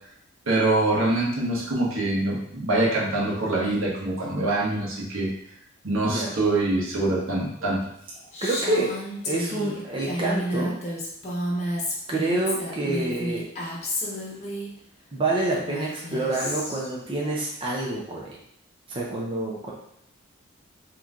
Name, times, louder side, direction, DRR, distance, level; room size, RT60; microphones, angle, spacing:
voice 1, 0.5-5.3 5.8-7.8 18.1-18.2, right 2 dB, 75° right, -4 dB, 1.3 m, -24 dB
Female speech woman speaking, 8.3-14.7 15.5-16.9, equal, 35° left, 0.9 m, -31 dB
voice 2, 8.4-8.9 9.2-10.7 12.1-13.4 15.1-18.4 18.9-19.7, right 2 dB, 25° right, -4 dB, 0.7 m, -27 dB
3.9 x 3.0 x 3.6 m, 0.72 s
head